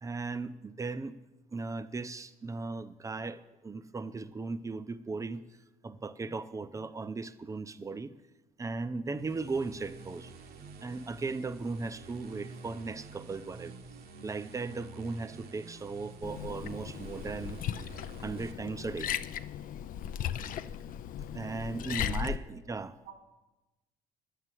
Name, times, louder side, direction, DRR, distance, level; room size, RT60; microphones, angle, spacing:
voice 1, 0.0-1.2 1.5-5.4 5.8-8.1 8.6-10.3 10.8-13.7 14.2-17.6 18.2-19.1 21.3-22.9, right 3 dB, 20° right, 13 dB, 0.6 m, -37 dB
sound 1, 9.2-18.5, right 4 dB, 65° right, 1.1 m, -49 dB
Liquid, 16.2-22.4, left 9 dB, 55° left, 0.5 m, -37 dB
voice 2, 21.5-22.7 23.0-23.1, right 6 dB, 90° right, 2 dB, 2.9 m, -54 dB
11.0 x 8.3 x 7.6 m, 1.1 s
cardioid pair, 110°, 17 cm